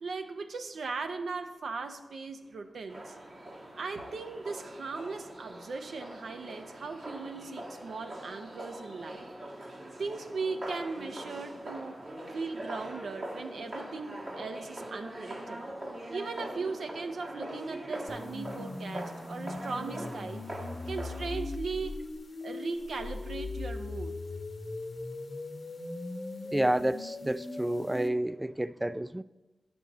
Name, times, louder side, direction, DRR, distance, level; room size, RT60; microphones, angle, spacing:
voice 1, 0.0-3.1 3.7-9.3 9.6-15.7 16.1-22.1 22.4-24.1, right 4 dB, 80° right, 0.6 m, -38 dB
sound 1, 2.9-21.4, right 1 dB, 60° right, 1.7 m, -42 dB
sound 2, 18.1-28.1, left 2 dB, 65° left, 1.0 m, -39 dB
voice 2, 26.5-29.2, right 1 dB, 15° right, 0.3 m, -30 dB
9.3 x 6.2 x 4.0 m
cardioid pair, 45°, 0 cm